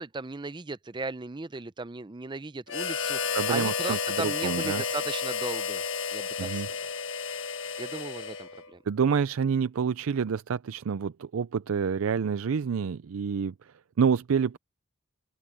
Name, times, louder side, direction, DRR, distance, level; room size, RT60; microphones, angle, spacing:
voice 1, 0.0-5.8 6.1-6.6 7.8-8.8, right 3 dB, 20° right, 0.5 m, -36 dB
Harmonica, 2.7-8.7, left 6 dB, 65° left, 1.3 m, -31 dB
voice 2, 3.3-4.8 6.4-6.7 8.9-14.6, right 6 dB, 90° right, 0.4 m, -28 dB
open air
head